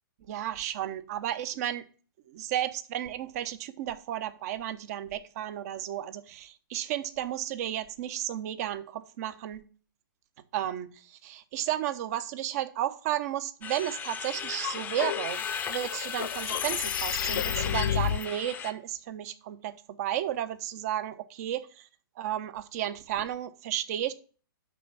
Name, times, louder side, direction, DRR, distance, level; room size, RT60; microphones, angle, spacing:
voice 1, 0.3-1.8 2.3-9.6 10.5-21.9 22.2-24.1, right 12 dB, 45° right, 12 dB, 0.9 m, -33 dB
sound 1, 13.6-18.7, left 7 dB, 15° left, 0.7 m, -36 dB
sound 2, 14.5-18.2, left 10 dB, 65° left, 0.4 m, -31 dB
6.1 x 6.0 x 7.2 m, 0.40 s
hypercardioid pair, 135°, 12 cm